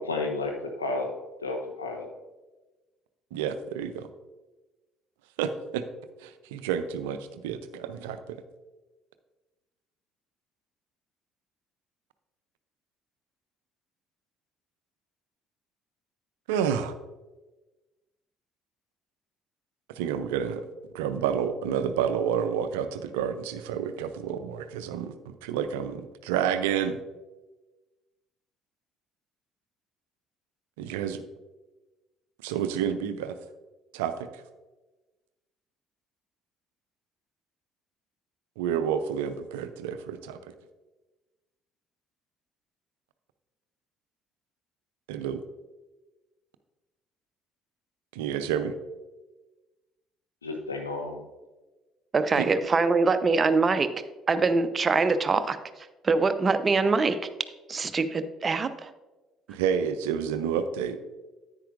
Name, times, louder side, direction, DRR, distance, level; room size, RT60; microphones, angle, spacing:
voice 1, 0.1-0.5 0.8-1.1 1.4-2.1 50.4-51.2, left 3 dB, 85° left, 2 dB, 0.8 m, -31 dB
voice 2, 3.3-4.1 5.4-5.8 6.2-8.4 16.5-16.9 19.9-20.6 20.9-27.0 30.8-31.2 32.4-33.4 33.9-34.4 38.6-40.4 45.1-45.4 48.1-48.7 52.4-52.5 59.5-61.0, right 8 dB, 70° right, 10 dB, 0.5 m, -29 dB
voice 3, 52.1-53.9 54.3-55.6 56.0-57.3 57.7-58.9, right 4 dB, 30° right, 11 dB, 0.7 m, -24 dB
10.0 x 8.8 x 2.5 m, 1.2 s
figure-of-eight pair, 55°, 0 cm